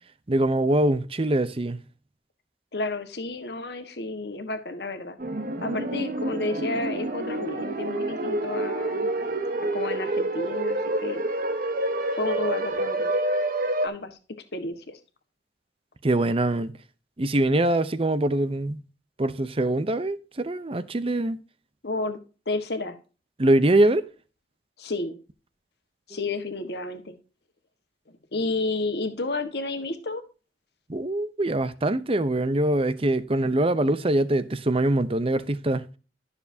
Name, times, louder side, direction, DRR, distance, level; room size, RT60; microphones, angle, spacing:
voice 1, 0.3-1.8 16.0-16.7 17.2-18.8 19.2-21.4 23.4-24.0 30.9-35.9, right 1 dB, 30° right, 0.7 m, -23 dB
voice 2, 2.7-5.2 5.6-9.1 9.6-11.3 12.1-13.1 13.8-14.2 14.5-15.0 21.8-22.2 22.4-22.9 24.8-25.1 26.1-27.1 28.1-30.2, left 2 dB, 65° left, 1.5 m, -31 dB
sound 1, 5.2-13.9, right 1 dB, 50° right, 1.1 m, -28 dB
12.5 x 6.9 x 2.8 m
head